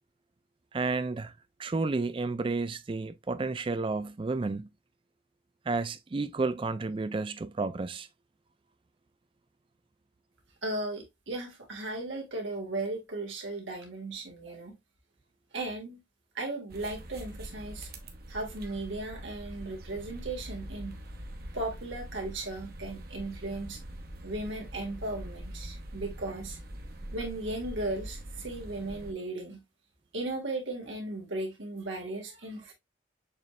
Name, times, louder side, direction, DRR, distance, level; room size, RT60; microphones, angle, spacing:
voice 1, 0.7-1.3 1.6-4.7 5.7-8.1, right 3 dB, 25° right, 0.3 m, -31 dB
voice 2, 10.6-14.7 15.5-16.0 16.3-17.9 18.3-21.0 21.5-23.8 24.2-26.6 27.1-29.6 30.1-32.7, right 2 dB, 80° right, 1.8 m, -36 dB
sound 1, 16.7-29.1, right 1 dB, 50° right, 0.9 m, -43 dB
6.6 x 3.2 x 2.3 m
head